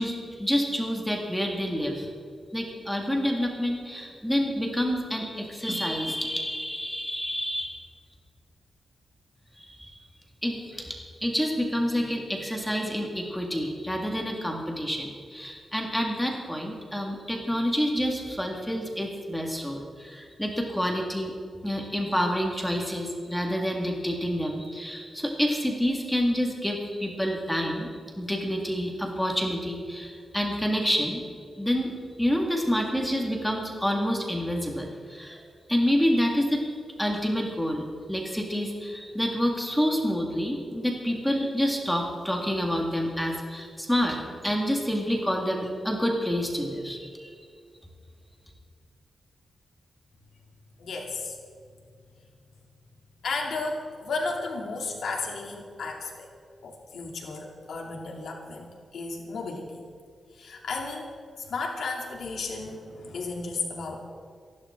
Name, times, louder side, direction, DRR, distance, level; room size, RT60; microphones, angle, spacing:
voice 1, 0.0-2.1 2.5-7.8 9.6-9.9 10.4-10.9 11.2-21.3 21.6-31.2 31.6-35.4 35.7-36.6 37.0-44.2 44.4-47.4, equal, 5° left, 0 dB, 1.8 m, -28 dB
voice 2, 50.8-51.4 53.2-56.3 56.6-59.8 60.3-64.0, left 3 dB, 85° left, 0 dB, 2.7 m, -34 dB
27.0 x 11.5 x 3.7 m, 2.2 s
wide cardioid pair, 180°, 0 cm